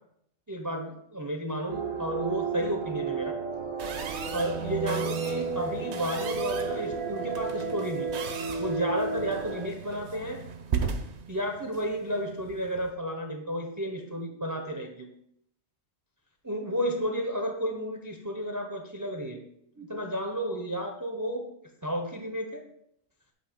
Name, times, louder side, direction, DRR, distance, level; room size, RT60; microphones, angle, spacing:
voice 1, 0.5-3.4 4.3-8.1 8.6-10.4 11.3-15.1 16.4-19.4 19.8-21.4 21.8-22.6, equal, 20° right, 2 dB, 0.5 m, -32 dB
sound 1, 1.7-9.7, right 4 dB, 90° right, 1.3 m, -33 dB
sound 2, 3.8-12.9, right 6 dB, 60° right, 0.9 m, -38 dB
8.3 x 2.8 x 5.8 m, 0.74 s
omnidirectional pair, 1.4 m